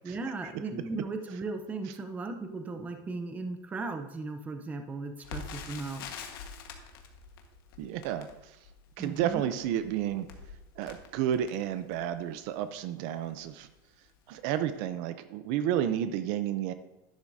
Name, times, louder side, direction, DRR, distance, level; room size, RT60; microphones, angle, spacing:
voice 1, 0.0-6.1 9.0-9.4, right 3 dB, 15° right, 6 dB, 0.6 m, -37 dB
Crackle, 5.2-12.2 12.8-12.9 13.2-13.5 14.1-14.3 14.6-14.7, left 5 dB, 90° left, 1.4 m, -46 dB
voice 2, 7.8-8.3 9.0-10.3 10.8-13.7 14.3-16.7, right 10 dB, 55° right, 11 dB, 0.6 m, -31 dB
11.5 x 10.5 x 2.7 m, 0.92 s
cardioid pair, 170°, 12 cm